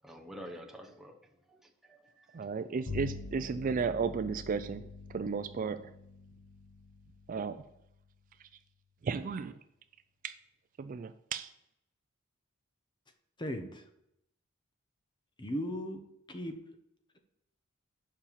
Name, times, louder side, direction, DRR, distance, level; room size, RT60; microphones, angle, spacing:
voice 1, 0.0-2.5, equal, ahead, 1 dB, 1.1 m, -49 dB
voice 2, 2.3-5.9 7.3-7.6 8.4-8.5 9.0-9.6 10.2-10.3 10.8-11.5, right 5 dB, 40° right, 11 dB, 0.3 m, -34 dB
Bowed string instrument, 2.9-8.5, left 4 dB, 55° left, 1.4 m, -46 dB
voice 3, 13.4-13.8 15.4-16.6, equal, 20° left, 6 dB, 1.0 m, -37 dB
7.3 x 5.6 x 7.0 m, 0.80 s
head